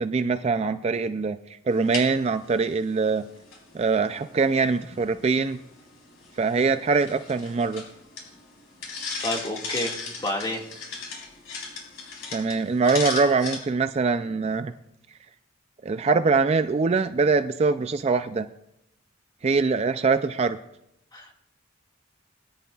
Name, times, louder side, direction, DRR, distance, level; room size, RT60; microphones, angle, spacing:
voice 1, 0.0-1.4 1.7-3.2 3.7-5.6 6.4-7.8 12.3-14.7 15.8-18.5 19.4-20.6, right 4 dB, 30° right, 10 dB, 0.3 m, -23 dB
sound 1, 1.7-13.6, left 4 dB, 90° left, 4.1 m, -38 dB
voice 2, 9.2-10.6 21.1-21.3, left 1 dB, 20° left, 0 dB, 1.9 m, -30 dB
21.0 x 11.0 x 2.4 m, 0.82 s
head